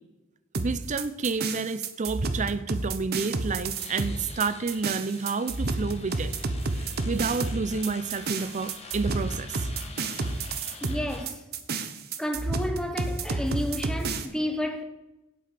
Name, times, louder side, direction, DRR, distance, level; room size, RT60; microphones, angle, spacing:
sound 1, 0.5-14.3, right 3 dB, 55° right, 1.0 m, -30 dB
voice 1, 0.6-6.3 6.8-9.7, right 4 dB, 40° right, 0.5 m, -30 dB
sound 2, 3.7-11.2, left 3 dB, 30° left, 1.6 m, -46 dB
voice 2, 10.8-11.4 12.2-14.8, left 1 dB, 5° left, 1.1 m, -31 dB
8.4 x 8.4 x 6.8 m
head